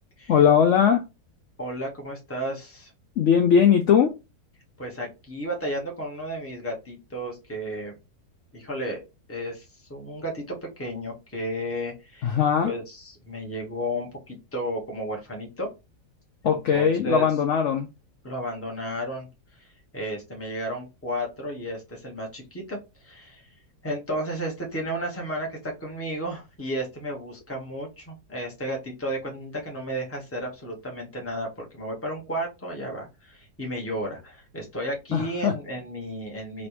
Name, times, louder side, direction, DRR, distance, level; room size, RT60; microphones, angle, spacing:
voice 1, 0.3-1.0 3.2-4.1 12.2-12.7 16.4-17.9 35.1-35.5, left 8 dB, 70° left, 0.7 m, -20 dB
voice 2, 1.6-2.9 4.8-7.9 8.5-9.0 9.3-9.6 9.9-12.4 12.6-15.7 16.4-17.3 18.2-19.3 19.5-19.7 19.9-23.5 23.8-36.7, equal, 10° left, 0.9 m, -33 dB
3.3 x 3.0 x 2.9 m
omnidirectional pair, 1.9 m